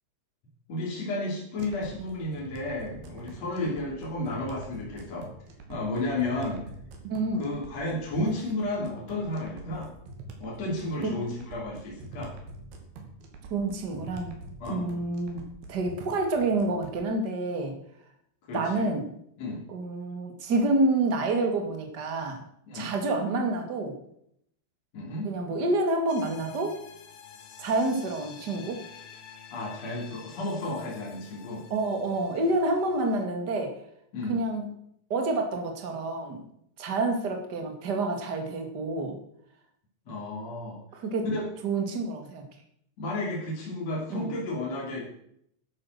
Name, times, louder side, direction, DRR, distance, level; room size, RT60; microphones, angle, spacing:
voice 1, 0.7-5.3 5.7-6.6 7.4-9.9 10.4-12.3 14.6-14.9 18.5-18.9 19.4-19.6 22.7-22.9 24.9-25.3 29.5-31.6 34.1-34.4 40.1-40.8 41.2-41.5 43.0-45.1, left 2 dB, 40° left, -4 dB, 3.7 m, -32 dB
sound 1, 1.6-17.0, right 3 dB, 60° right, 3.9 m, -45 dB
voice 2, 7.1-7.5 11.0-11.1 13.5-14.3 14.7-15.4 15.7-17.7 18.5-19.0 19.7-22.4 22.7-24.0 25.2-26.8 27.6-28.8 31.7-33.7 34.3-34.7 35.1-36.4 36.8-39.2 40.9-41.3 41.6-42.4 44.1-44.3, right 2 dB, 35° right, 3 dB, 1.7 m, -28 dB
sound 2, 26.1-33.3, left 7 dB, 60° left, 2.8 m, -49 dB
12.0 x 11.0 x 6.6 m, 0.71 s
omnidirectional pair, 5.2 m